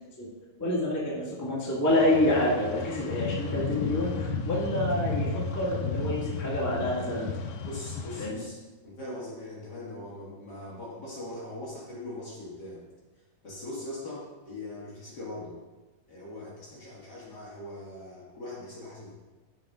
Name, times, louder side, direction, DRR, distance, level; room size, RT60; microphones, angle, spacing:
voice 1, 0.6-7.3 8.2-8.4, left 1 dB, 10° left, -7 dB, 0.7 m, -27 dB
sound 1, 1.9-8.3, left 4 dB, 80° left, 1.9 m, -33 dB
voice 2, 7.6-12.9 13.4-15.6 16.1-19.1, left 1 dB, 40° left, -6 dB, 1.7 m, -41 dB
12.0 x 4.8 x 3.6 m, 1.2 s
omnidirectional pair, 3.8 m